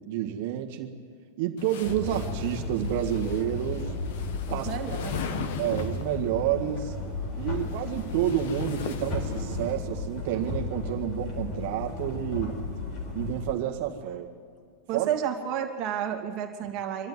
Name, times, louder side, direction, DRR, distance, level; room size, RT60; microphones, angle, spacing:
voice 1, 0.1-0.9 1.4-3.9 4.5-4.7 5.6-6.9 7.4-12.6 13.1-14.3 14.9-15.1, right 11 dB, 50° right, 2 dB, 1.7 m, -29 dB
sound 1, 1.6-6.2 7.2-9.7, left 6 dB, 55° left, 1.4 m, -39 dB
sound 2, 1.8-13.5, left 3 dB, 35° left, 4.2 m, -34 dB
voice 2, 4.5-5.5 14.9-17.1, right 9 dB, 35° right, 2 dB, 2.4 m, -31 dB
25.5 x 12.0 x 9.7 m, 2.1 s
supercardioid pair, 165°, 0 cm